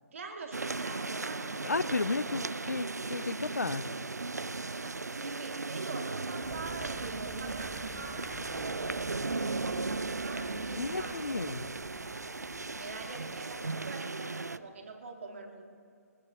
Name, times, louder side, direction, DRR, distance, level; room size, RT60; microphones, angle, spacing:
voice 1, 0.1-1.7 4.7-8.9 9.3-11.4 12.0-12.2 12.7-15.6, right 4 dB, 55° right, 2 dB, 2.1 m, -45 dB
sound 1, 0.5-14.6, right 3 dB, 80° right, 0.4 m, -36 dB
voice 2, 1.6-3.8 10.7-11.7, left 3 dB, 80° left, 17 dB, 0.5 m, -33 dB
sound 2, 6.4-13.9, right 1 dB, 5° right, 0.9 m, -51 dB
20.5 x 19.5 x 2.8 m, 2.4 s
figure-of-eight pair, 130°, 9 cm